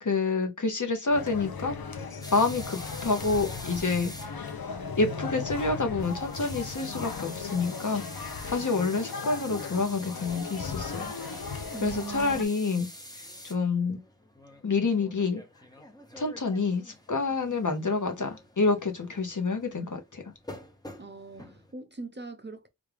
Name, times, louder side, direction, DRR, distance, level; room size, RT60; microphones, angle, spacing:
voice 1, 0.0-1.7 2.3-4.3 5.0-11.1 11.8-12.9 13.4-14.0 14.6-15.4 16.2-20.2, left 3 dB, 60° left, 0.9 m, -28 dB
sound 1, 1.1-12.4, left 5 dB, 80° left, 0.6 m, -37 dB
sound 2, 2.2-21.7, left 1 dB, 10° left, 0.8 m, -47 dB
voice 2, 11.7-12.5 21.0-22.7, right 4 dB, 30° right, 0.6 m, -41 dB
3.4 x 2.4 x 3.3 m
wide cardioid pair, 45°, 35 cm